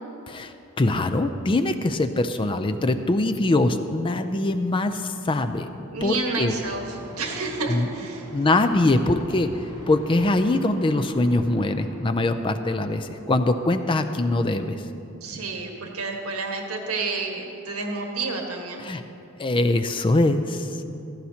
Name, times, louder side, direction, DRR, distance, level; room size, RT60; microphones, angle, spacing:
voice 1, 0.3-5.7 6.0-6.5 7.7-7.9 8.3-14.8 18.8-19.0 19.4-20.7, left 2 dB, 25° left, 9 dB, 0.4 m, -23 dB
voice 2, 5.9-6.8 7.2-8.3 15.2-18.8, right 3 dB, 85° right, 1 dB, 1.5 m, -30 dB
sound 1, 6.4-13.7, right 1 dB, 20° right, 3.3 m, -42 dB
15.5 x 14.0 x 2.8 m, 2.7 s
head